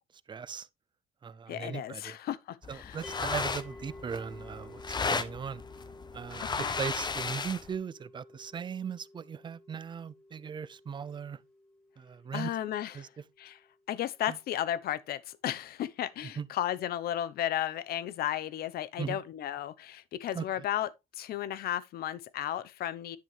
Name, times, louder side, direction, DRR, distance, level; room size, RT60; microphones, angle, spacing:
voice 1, 0.3-0.7 1.2-2.2 2.7-5.6 6.1-11.4 12.0-12.5 12.9-13.1 14.3-14.4 16.2-16.5 19.0-19.2 20.3-20.6, right 6 dB, 25° right, 0.5 m, -38 dB
voice 2, 1.5-3.0 6.5-6.7 12.3-13.1 13.4-13.6 13.9-23.2, left 11 dB, 65° left, 0.9 m, -34 dB
sound 1, 2.6-7.7, left 4 dB, 25° left, 1.0 m, -35 dB
sound 2, 3.0-14.2, left 1 dB, 5° left, 3.3 m, -52 dB
10.5 x 6.2 x 3.3 m
cardioid pair, 110°, 17 cm